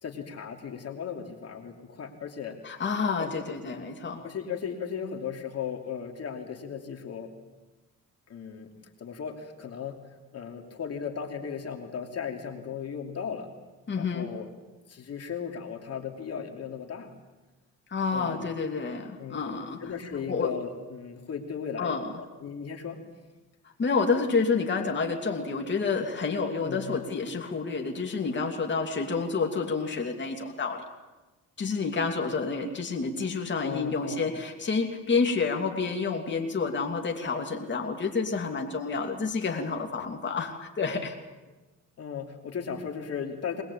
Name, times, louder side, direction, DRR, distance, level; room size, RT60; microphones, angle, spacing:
voice 1, 0.0-2.8 3.2-3.6 4.2-7.3 8.3-8.7 9.0-10.0 10.3-13.5 13.9-14.5 14.9-17.1 18.1-18.5 19.2-23.0 26.6-27.0 33.6-34.4 42.0-43.6, left 7 dB, 55° left, 4 dB, 2.9 m, -36 dB
voice 2, 2.6-4.2 13.9-14.3 17.9-19.8 20.3-20.5 21.8-22.1 23.8-30.8 31.6-41.1, left 4 dB, 40° left, 2 dB, 2.7 m, -29 dB
22.5 x 20.5 x 8.6 m, 1.2 s
cardioid pair, 90°, 30 cm